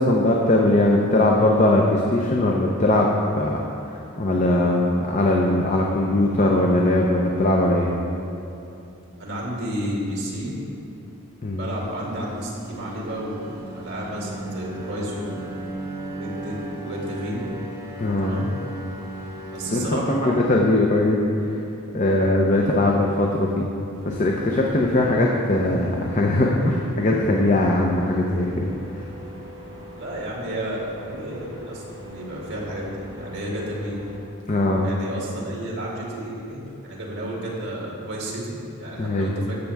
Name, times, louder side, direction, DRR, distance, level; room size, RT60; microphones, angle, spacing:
voice 1, 0.0-3.6 4.2-7.9 11.4-11.7 18.0-18.4 19.7-21.2 21.9-23.6 24.1-28.7 34.5-34.9 39.0-39.3, left 1 dB, 35° left, -1 dB, 0.7 m, -20 dB
voice 2, 9.2-10.5 11.5-15.6 16.1-17.4 18.2-18.5 19.5-20.4 22.5-22.8 30.0-34.0 34.8-39.6, right 1 dB, 55° right, -4 dB, 2.3 m, -32 dB
sound 1, 11.7-20.0, right 2 dB, 15° right, 1.5 m, -36 dB
sound 2, 23.9-34.2, equal, 30° right, 2.4 m, -41 dB
14.5 x 6.7 x 3.5 m, 2.9 s
head